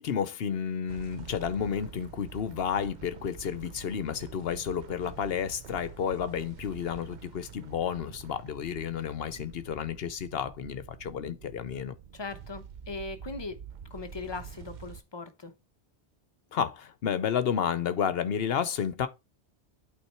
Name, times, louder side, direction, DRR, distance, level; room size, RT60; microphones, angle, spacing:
voice 1, 0.0-11.9 16.5-19.1, left 8 dB, 65° left, 0.9 m, -31 dB
sound 1, 0.9-15.0, right 8 dB, 50° right, 0.6 m, -47 dB
voice 2, 12.1-13.6 13.9-15.5, left 3 dB, 25° left, 0.9 m, -39 dB
8.5 x 3.6 x 4.5 m
omnidirectional pair, 1.1 m